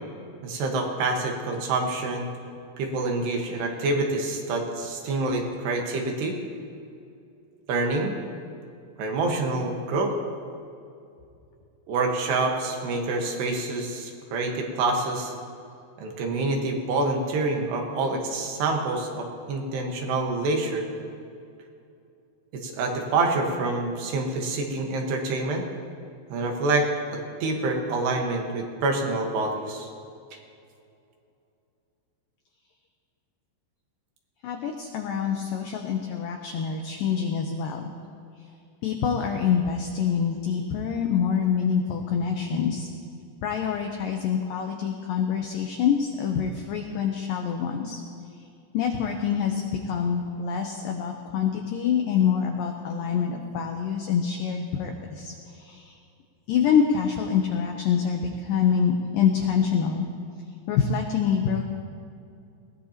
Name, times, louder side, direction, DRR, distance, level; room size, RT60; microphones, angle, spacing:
voice 1, 0.4-2.3 2.8-6.4 7.7-8.2 9.0-10.2 11.9-15.3 16.0-20.9 22.5-25.7 26.3-29.9, right 3 dB, 70° right, 2 dB, 3.4 m, -27 dB
voice 2, 34.4-37.9 38.8-42.9 43.4-48.0 48.7-56.0 56.5-60.1 60.7-61.6, left 7 dB, 85° left, 3 dB, 2.0 m, -26 dB
20.5 x 18.5 x 2.9 m, 2.5 s
omnidirectional pair, 5.1 m